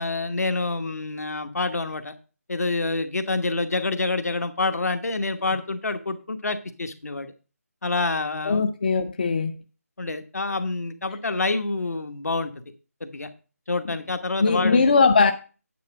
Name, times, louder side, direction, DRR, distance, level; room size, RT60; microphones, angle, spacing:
voice 1, 0.0-2.1 2.5-7.3 7.8-8.7 10.0-12.5 13.0-13.3 13.7-14.9, left 3 dB, 70° left, 1.2 m, -27 dB
voice 2, 8.4-9.6 14.4-15.3, left 4 dB, 35° left, 0.5 m, -20 dB
9.3 x 4.5 x 6.0 m
figure-of-eight pair, 165°, 9 cm